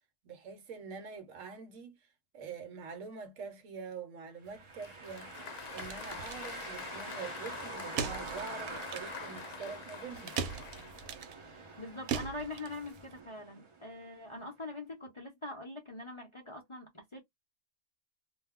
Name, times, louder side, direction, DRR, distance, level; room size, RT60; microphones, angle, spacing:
voice 1, 0.2-2.0 2.3-5.3 5.7-10.3, right 5 dB, 65° right, 1.1 m, -45 dB
sound 1, 4.4-14.2, right 4 dB, 40° right, 0.4 m, -46 dB
sound 2, 4.5-13.2, right 7 dB, 85° right, 1.1 m, -42 dB
Applause, 4.8-11.2, left 9 dB, 90° left, 1.1 m, -46 dB
voice 2, 11.8-17.2, left 2 dB, 35° left, 0.5 m, -43 dB
2.5 x 2.2 x 3.5 m
omnidirectional pair, 1.5 m